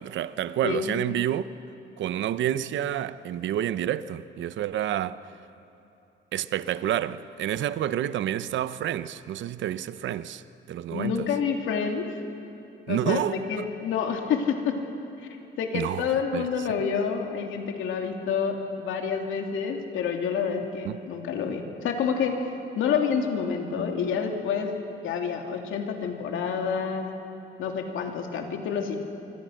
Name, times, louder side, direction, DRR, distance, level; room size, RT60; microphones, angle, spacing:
voice 1, 0.0-1.4 2.0-5.2 6.3-10.4 10.7-11.3 12.9-13.3 15.7-16.5 20.8-21.0, right 11 dB, 75° right, 0.8 m, -29 dB
voice 2, 0.6-1.0 10.9-12.1 12.9-14.8 15.6-22.4 22.7-24.8 25.0-27.1 27.6-29.0, left 6 dB, 90° left, 2.8 m, -28 dB
26.5 x 24.5 x 6.5 m
cardioid pair, 145°, 20 cm